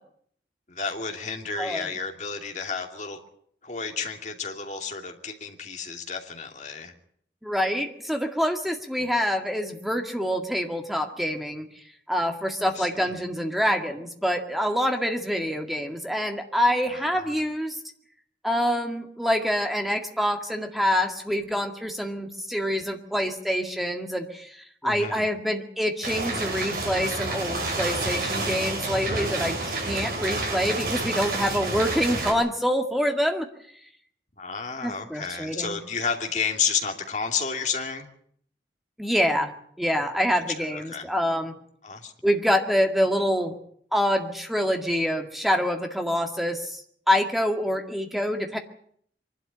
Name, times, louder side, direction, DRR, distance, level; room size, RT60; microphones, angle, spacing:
voice 1, 0.7-3.2 3.6-6.9 9.0-9.1 12.7-13.1 16.9-17.3 24.8-25.3 34.4-38.1 40.3-40.4 40.7-41.1 41.8-42.1, left 5 dB, 40° left, 4 dB, 2.7 m, -31 dB
voice 2, 7.4-17.8 18.4-33.5 34.8-35.8 39.0-39.5 39.8-41.5 42.2-43.6 43.9-46.8 47.1-48.6, equal, ahead, 4 dB, 2.0 m, -26 dB
sound 1, 26.0-32.3, right 2 dB, 55° right, 7.3 m, -29 dB
24.0 x 12.0 x 10.0 m, 0.65 s
head